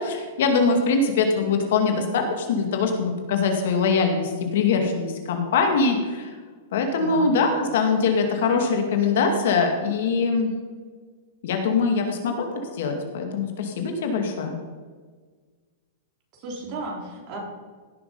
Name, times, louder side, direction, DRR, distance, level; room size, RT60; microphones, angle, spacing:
voice 1, 0.0-6.3 6.7-10.5 11.4-14.6, left 4 dB, 70° left, 5 dB, 2.1 m, -23 dB
voice 2, 7.0-7.3 16.3-17.4, right 2 dB, 45° right, -1 dB, 3.8 m, -34 dB
16.5 x 6.3 x 5.4 m, 1.5 s
hypercardioid pair, 120°, 0 cm